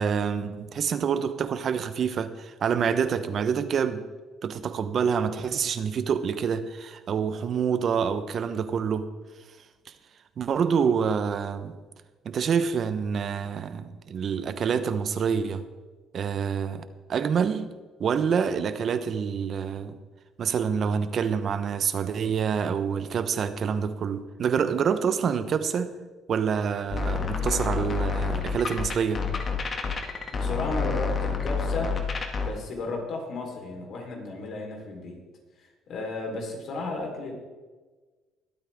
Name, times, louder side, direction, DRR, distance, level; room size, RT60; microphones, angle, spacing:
voice 1, 0.0-4.0 4.4-9.1 10.4-11.7 12.2-15.6 16.1-16.8 17.1-17.7 18.0-19.9 20.4-25.9 26.3-29.2, right 7 dB, 50° right, 11 dB, 1.0 m, -27 dB
sound 1, 26.9-32.5, left 5 dB, 40° left, 1.8 m, -28 dB
voice 2, 30.3-31.9 32.4-35.2 35.6-37.3, left 3 dB, 60° left, 1 dB, 4.0 m, -34 dB
21.5 x 8.8 x 3.6 m, 1.3 s
cardioid pair, 90°, 0 cm